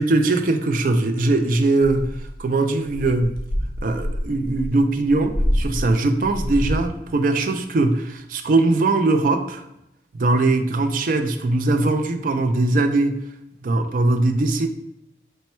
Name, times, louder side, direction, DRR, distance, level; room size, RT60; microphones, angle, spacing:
voice 1, 0.0-2.1 2.4-3.4 3.8-9.6 10.1-13.2 13.6-14.7, right 2 dB, 50° right, 6 dB, 0.4 m, -20 dB
sound 1, 1.8-2.4 2.8-6.9, equal, 55° left, 0.6 m, -26 dB
4.3 x 2.1 x 4.2 m, 0.84 s
head